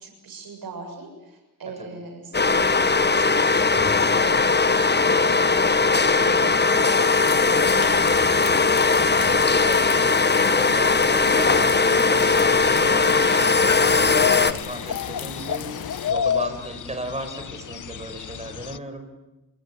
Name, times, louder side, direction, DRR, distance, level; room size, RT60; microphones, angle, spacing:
voice 1, 0.0-6.9 7.2-8.4, right 3 dB, 90° right, 4 dB, 7.0 m, -41 dB
voice 2, 1.7-2.0 4.8-5.0 9.2-9.8 10.2-15.7 16.1-19.1, right 1 dB, 20° right, 7 dB, 5.2 m, -36 dB
sound 1, 2.3-14.5, left 4 dB, 30° left, 1.3 m, -19 dB
sound 2, 6.9-16.1, left 9 dB, 85° left, 1.1 m, -36 dB
sound 3, 12.3-18.8, left 8 dB, 60° left, 1.0 m, -30 dB
28.0 x 17.5 x 9.8 m, 1.0 s
cardioid pair, 75°, 34 cm